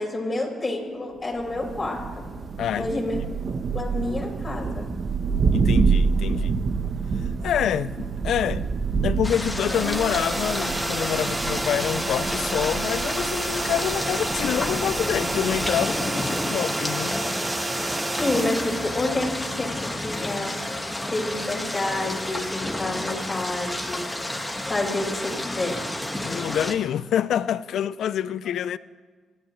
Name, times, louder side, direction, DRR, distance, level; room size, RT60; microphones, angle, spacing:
voice 1, 0.0-2.0 2.7-3.2 3.7-4.9 18.2-19.3 19.5-20.5 21.1-24.1 24.6-25.8, left 2 dB, 25° left, 5.3 m, -28 dB
Thunder, 1.4-16.0, right 5 dB, 50° right, 1.0 m, -28 dB
voice 2, 2.6-2.9 5.5-6.6 7.2-8.6 9.0-17.2 26.2-28.8, left 10 dB, 75° left, 0.5 m, -27 dB
sound 1, 9.2-26.7, left 1 dB, 10° left, 1.6 m, -30 dB
sound 2, 9.6-19.5, right 3 dB, 25° right, 0.3 m, -31 dB
27.5 x 13.0 x 3.2 m
cardioid pair, 75°, 0 cm